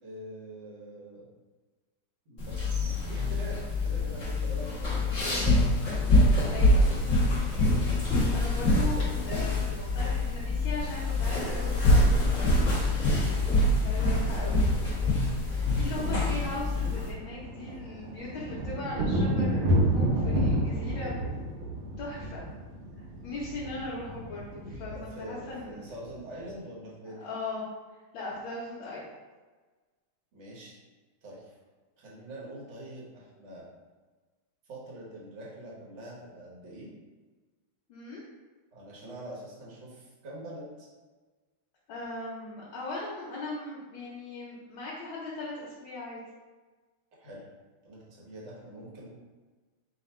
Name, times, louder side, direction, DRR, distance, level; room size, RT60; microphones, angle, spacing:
voice 1, 0.0-1.2 2.3-5.6 15.9-16.5 24.8-27.2 30.3-30.7 31.2-31.5 32.0-33.7 34.7-36.9 38.7-40.9 47.2-47.4 47.8-49.1, right 1 dB, 40° right, -5 dB, 1.1 m, -44 dB
sound 1, 2.4-17.1, left 1 dB, 40° left, 1.3 m, -25 dB
voice 2, 6.5-6.9 8.3-12.7 13.7-14.6 15.7-21.1 22.0-22.4 23.0-25.9 27.1-27.6 28.1-29.0 37.9-38.2 41.9-46.2, left 2 dB, 70° left, -8 dB, 1.5 m, -39 dB
sound 2, 10.7-12.3 13.6-13.7 13.9-14.1 14.4-26.5, right 1 dB, 80° right, 1.5 m, -31 dB
4.0 x 2.5 x 4.2 m, 1.3 s
omnidirectional pair, 2.4 m